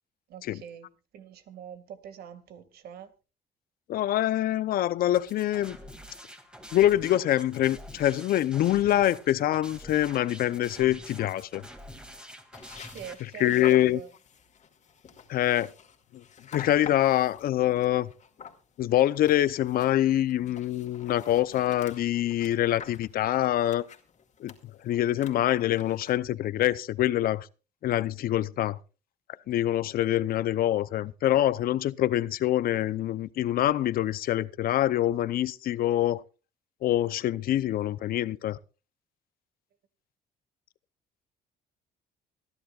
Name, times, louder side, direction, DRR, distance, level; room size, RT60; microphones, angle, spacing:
voice 1, 0.3-0.9 1.1-3.1 12.8-14.1, right 9 dB, 70° right, 2.0 m, -44 dB
voice 2, 3.9-5.8 6.7-11.6 13.4-14.0 15.3-15.7 16.1-16.2 16.5-18.1 18.8-23.8 24.4-24.5 24.8-27.5 27.8-28.8 29.5-36.2 36.8-38.6, left 13 dB, 60° left, 0.6 m, -25 dB
sound 1, 5.1-13.1, equal, 5° right, 2.3 m, -47 dB
sound 2, 12.5-26.1, left 7 dB, 45° left, 2.2 m, -48 dB
25.0 x 11.0 x 2.4 m
cardioid pair, 110°, 17 cm